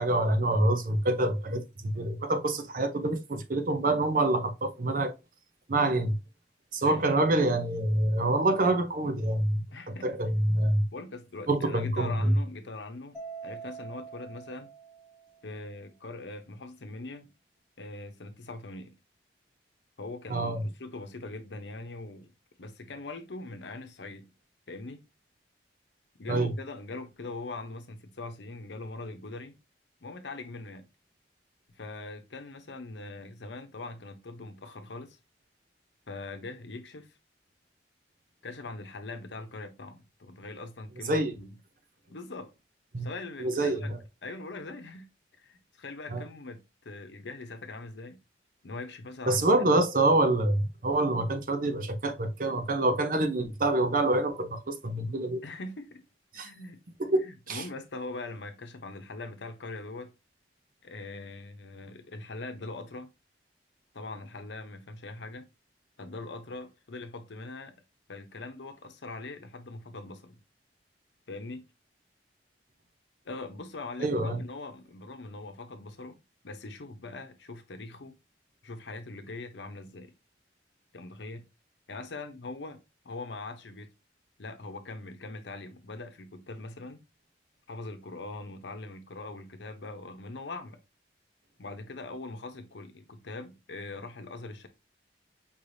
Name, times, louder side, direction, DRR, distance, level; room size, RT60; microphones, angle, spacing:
voice 1, 0.0-5.1 5.7-6.1 6.7-10.9 11.5-12.4 20.3-20.6 26.3-26.5 41.1-41.3 42.9-43.1 43.4-44.0 46.1-46.2 49.3-55.4 56.3-56.5 57.0-57.6 74.0-74.4, right 2 dB, 50° right, 0.7 m, -26 dB
voice 2, 9.7-10.4 10.9-14.7 15.4-17.3 17.8-18.9 20.0-22.3 22.6-24.3 24.7-25.1 26.2-29.6 30.0-30.9 31.8-35.2 36.1-37.2 38.4-41.5 42.1-42.5 43.0-43.9 44.2-45.1 45.4-48.2 48.6-49.5 55.4-56.0 56.3-56.8 57.2-60.1 60.8-63.1 63.9-65.5 66.0-67.7 68.1-70.4 71.3-71.6 73.2-76.2 76.4-78.2 78.6-80.1 80.9-81.5 81.9-83.9 84.4-87.0 87.7-90.8 91.6-94.7, left 2 dB, 80° left, 0.8 m, -42 dB
Mallet percussion, 13.1-15.6, right 6 dB, 5° right, 1.5 m, -44 dB
5.3 x 3.3 x 2.6 m
head